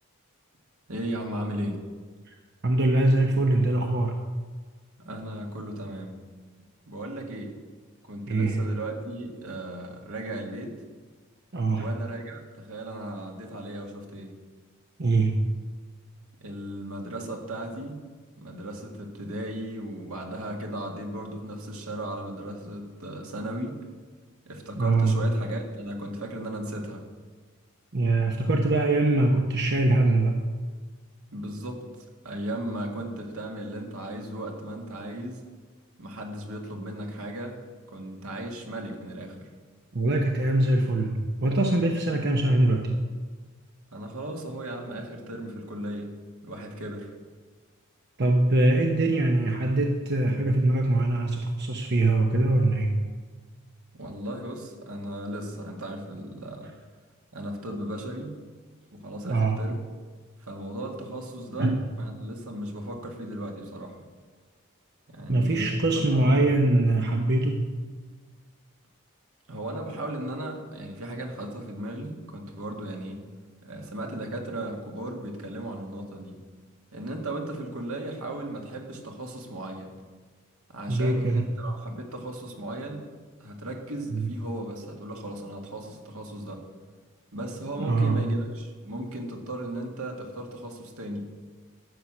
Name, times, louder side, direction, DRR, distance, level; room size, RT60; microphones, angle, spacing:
voice 1, 0.9-1.8 5.0-6.2 6.9-7.6 8.1-10.7 11.7-14.3 16.4-18.0 18.4-23.8 24.5-27.1 31.3-31.8 32.2-35.4 36.0-37.6 37.9-39.5 43.9-46.1 46.4-47.1 53.9-56.7 57.3-58.3 58.9-59.8 60.4-61.7 62.0-64.0 65.1-65.8 66.1-66.5 69.5-73.2 73.6-76.4 76.9-79.9 80.7-83.0 83.4-86.6 87.3-91.2, right 1 dB, 80° right, 1 dB, 2.0 m, -36 dB
voice 2, 2.6-4.1 8.3-8.6 11.5-11.9 15.0-15.3 24.8-25.1 27.9-30.4 39.9-42.9 48.2-52.9 59.2-59.6 61.6-61.8 65.3-67.7 80.9-81.4 84.1-84.3 87.8-88.2, right 2 dB, 50° right, 2 dB, 0.9 m, -23 dB
12.5 x 8.3 x 6.1 m, 1.5 s
head